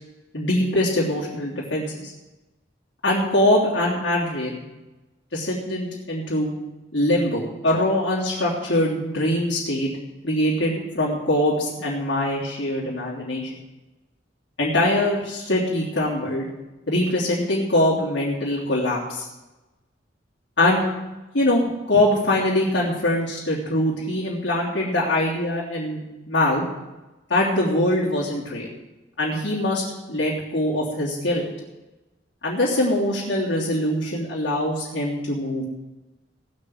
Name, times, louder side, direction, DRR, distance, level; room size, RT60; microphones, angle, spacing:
voice 1, 0.3-2.1 3.0-4.6 5.3-6.5 6.9-9.9 10.2-13.5 14.6-16.5 16.9-19.3 20.6-20.8 21.3-26.6 27.3-28.7 29.2-31.5 32.4-35.6, left 1 dB, 90° left, -6 dB, 3.2 m, -23 dB
17.5 x 6.6 x 7.9 m, 1.1 s
head